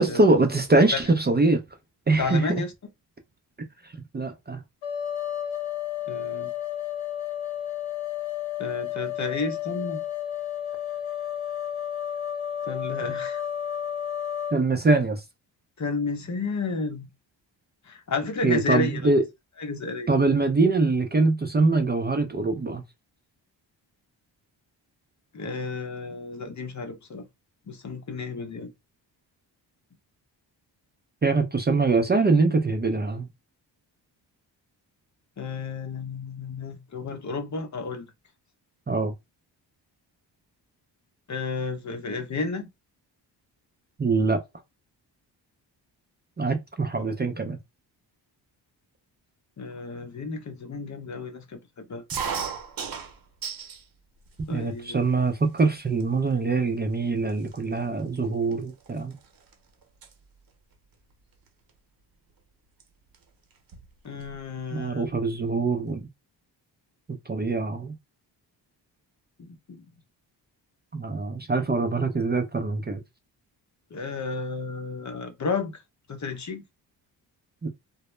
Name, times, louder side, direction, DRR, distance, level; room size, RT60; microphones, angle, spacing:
voice 1, 0.0-1.6 2.1-2.5 4.1-4.6 14.5-15.2 18.4-19.2 20.1-22.8 31.2-33.3 38.9-39.1 44.0-44.4 46.4-47.6 54.5-59.1 64.7-66.1 67.1-68.0 70.9-73.0 77.6-77.7, right 3 dB, 20° right, 0.5 m, -23 dB
voice 2, 2.2-2.7 6.1-6.5 8.6-10.0 12.6-13.4 15.8-17.1 17.8-19.1 19.6-20.1 25.3-27.3 27.7-28.7 35.4-38.1 41.3-42.7 49.6-52.0 54.5-55.0 64.0-65.1 69.4-69.9 73.9-75.8 76.1-76.6, left 4 dB, 40° left, 0.7 m, -32 dB
sound 1, 4.8-14.6, left 10 dB, 75° left, 0.8 m, -32 dB
sound 2, 52.1-53.8 54.3-54.9 55.6-55.7 55.9-56.3 57.0-57.1 57.3-59.5 59.8-60.1 61.5-61.7 62.8-62.9 63.1-63.2 63.5-64.4, right 6 dB, 50° right, 0.9 m, -36 dB
2.1 x 2.0 x 3.1 m
supercardioid pair, 55°, 46 cm